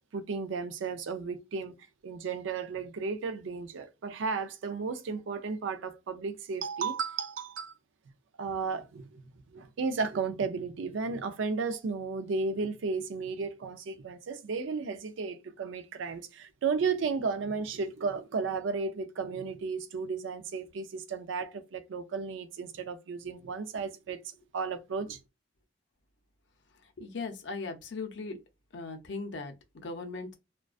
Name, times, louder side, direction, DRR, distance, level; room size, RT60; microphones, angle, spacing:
voice 1, 0.1-1.7 2.0-7.7 8.4-24.2 24.5-25.2, right 4 dB, 75° right, 0.4 m, -34 dB
voice 2, 27.0-28.4 28.7-30.3, left 3 dB, 60° left, 0.5 m, -38 dB
2.4 x 2.2 x 2.3 m
head